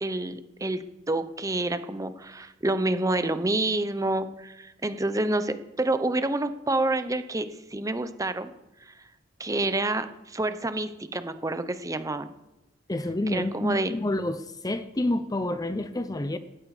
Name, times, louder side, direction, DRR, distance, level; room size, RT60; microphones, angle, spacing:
voice 1, 0.0-8.5 8.9-9.0 9.4-12.3 13.3-13.9, right 2 dB, 15° right, 11 dB, 0.8 m, -28 dB
voice 2, 12.9-16.4, left 1 dB, 20° left, 11 dB, 0.6 m, -28 dB
18.5 x 13.5 x 4.9 m, 0.96 s
head